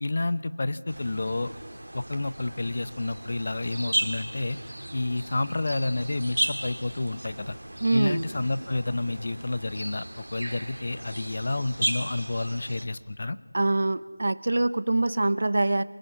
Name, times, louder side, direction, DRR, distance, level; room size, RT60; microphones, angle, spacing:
voice 1, 0.0-1.5 1.9-4.6 4.9-7.6 7.9-13.4, left 2 dB, 30° left, 16 dB, 0.8 m, -30 dB
sound 1, 0.9-12.8, right 1 dB, 70° right, 3.0 m, -35 dB
voice 2, 7.8-8.2 13.5-15.8, right 2 dB, 40° right, 17 dB, 0.8 m, -24 dB
23.5 x 21.5 x 8.5 m, 1.5 s
figure-of-eight pair, 175°, 0 cm